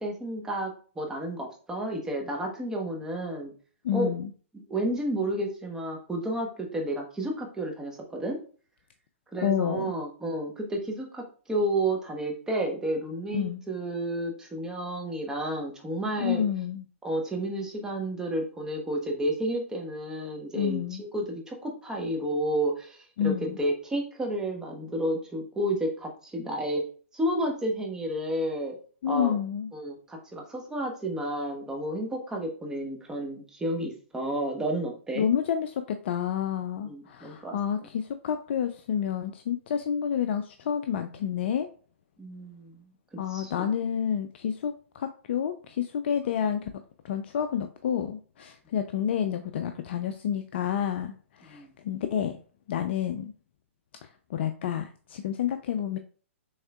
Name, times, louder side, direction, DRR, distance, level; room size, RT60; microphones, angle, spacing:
voice 1, 0.0-3.5 3.9-4.1 4.7-8.4 9.3-16.4 17.0-26.8 27.1-28.7 29.1-29.3 29.7-35.3 36.8-37.6 42.2-43.7 51.5-51.7, right 1 dB, 10° right, 0 dB, 1.0 m, -31 dB
voice 2, 3.8-4.3 9.4-9.9 13.3-13.6 16.2-16.8 20.5-21.0 23.2-23.6 29.0-29.7 35.2-41.7 43.2-46.7 47.0-52.4 52.7-53.3 54.0-56.0, left 9 dB, 55° left, 8 dB, 0.4 m, -29 dB
6.3 x 3.6 x 2.3 m, 0.42 s
hypercardioid pair, 130°, 7 cm